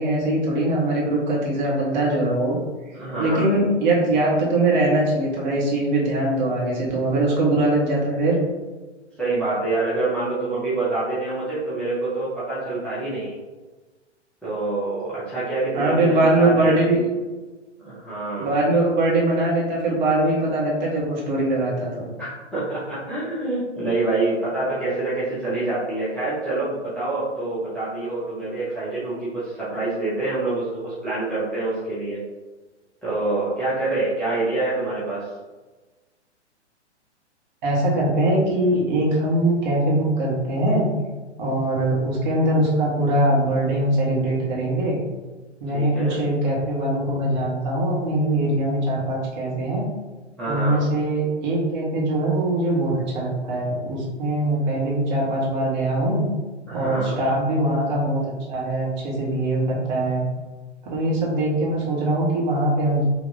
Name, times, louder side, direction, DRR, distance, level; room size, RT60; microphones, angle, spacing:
voice 1, 0.0-2.6 3.2-8.4 15.7-17.1 18.4-22.1 37.6-40.9 41.4-45.0 45.6-49.8 50.5-56.2 56.7-60.2 60.9-63.0, right 1 dB, 40° right, -4 dB, 1.4 m, -22 dB
voice 2, 2.9-3.5 9.2-13.4 14.4-16.8 17.8-18.5 22.2-32.2 33.0-35.3 45.7-46.2 50.4-50.8 56.7-57.2, right 2 dB, 5° left, -12 dB, 0.7 m, -26 dB
5.4 x 2.7 x 2.7 m, 1.2 s
figure-of-eight pair, 115°, 35 cm